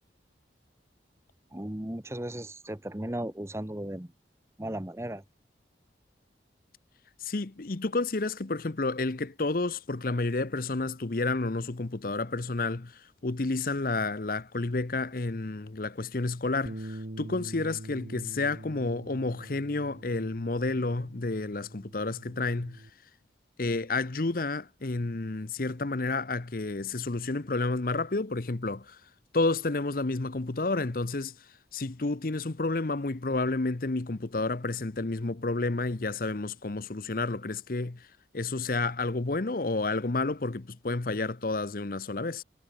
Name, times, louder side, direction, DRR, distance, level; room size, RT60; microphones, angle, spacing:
voice 1, 1.5-4.1 4.6-5.2, right 1 dB, 15° right, 1.0 m, -36 dB
voice 2, 7.2-22.8 23.6-29.0 29.3-31.3 31.7-38.1 38.3-42.4, left 3 dB, 50° left, 0.8 m, -30 dB
Bass guitar, 16.7-22.9, right 1 dB, 55° right, 1.6 m, -44 dB
head